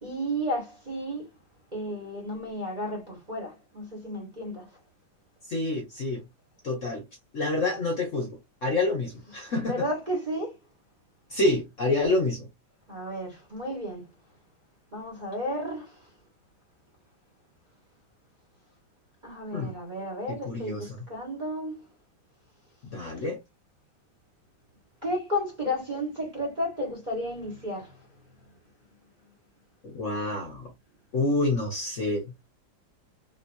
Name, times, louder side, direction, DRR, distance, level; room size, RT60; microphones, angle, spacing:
voice 1, 0.0-1.2 1.7-4.6 9.4-10.5 12.9-14.1 14.9-16.0 19.2-21.8 25.0-28.0, equal, 25° right, 1.5 m, -33 dB
voice 2, 5.5-6.2 6.6-7.0 7.3-9.9 11.3-12.5 19.5-19.8 20.4-21.1 22.9-23.4 29.8-30.7 31.1-32.3, left 2 dB, 50° left, 1.1 m, -28 dB
3.7 x 2.9 x 2.6 m
omnidirectional pair, 2.0 m